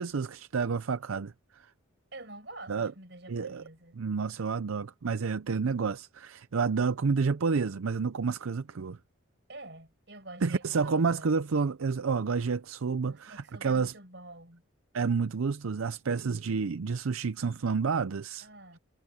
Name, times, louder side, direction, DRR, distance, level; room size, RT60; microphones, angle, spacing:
voice 1, 0.0-1.7 2.7-2.9 3.3-3.6 4.0-9.0 10.4-13.9 14.9-18.5, right 5 dB, 90° right, 0.5 m, -29 dB
voice 2, 2.1-4.0 9.5-11.3 13.0-14.6 18.4-18.8, right 2 dB, 55° right, 6.0 m, -47 dB
head